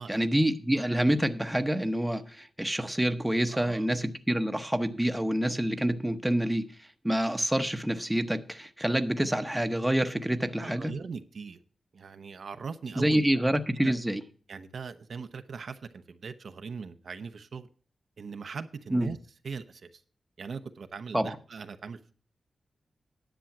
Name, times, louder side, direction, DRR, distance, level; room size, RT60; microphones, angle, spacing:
voice 1, 0.0-6.7 7.0-10.9 13.0-14.2 18.9-19.1 21.1-21.4, right 1 dB, 10° right, 0.9 m, -27 dB
voice 2, 3.5-3.9 10.6-11.6 11.9-13.2 13.8-14.0 14.5-17.7 18.2-19.2 19.4-20.0 20.4-22.1, right 5 dB, 70° right, 0.7 m, -40 dB
10.5 x 6.9 x 6.0 m
wide cardioid pair, 90°, 0 cm